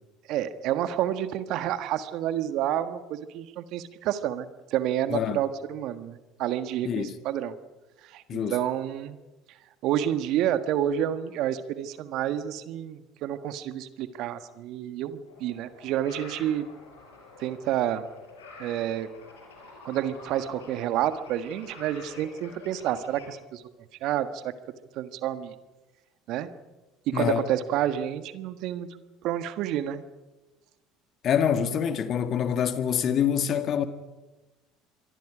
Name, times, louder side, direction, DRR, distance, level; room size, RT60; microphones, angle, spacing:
voice 1, 0.3-7.5 8.0-8.2 8.5-9.2 9.8-16.7 17.4-18.0 18.6-19.1 19.8-23.6 24.0-24.5 24.9-25.5 26.3-26.5 27.1-28.9 29.2-30.0, right 11 dB, 60° right, 1.5 m, -29 dB
voice 2, 5.1-5.4 6.8-7.2 8.3-8.6 27.1-27.5 31.2-33.8, left 8 dB, 50° left, 1.9 m, -25 dB
sound 1, 15.3-23.3, left 3 dB, 85° left, 5.8 m, -48 dB
26.0 x 23.0 x 5.1 m
hypercardioid pair, 70°, 0 cm